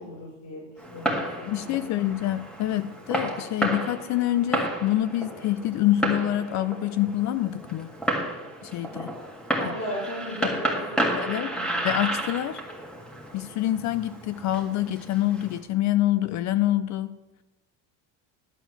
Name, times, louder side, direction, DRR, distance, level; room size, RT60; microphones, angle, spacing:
voice 1, 0.0-2.0 9.6-11.8, left 1 dB, 80° left, -7 dB, 3.3 m, -37 dB
Fireworks, 0.8-15.6, right 1 dB, ahead, 2.0 m, -32 dB
voice 2, 1.4-7.9 8.6-9.1 10.4-10.5 11.1-11.5 11.8-12.6 13.3-17.2, left 13 dB, 45° left, 14 dB, 0.4 m, -26 dB
11.5 x 4.5 x 7.7 m, 1.1 s
supercardioid pair, 115°, 42 cm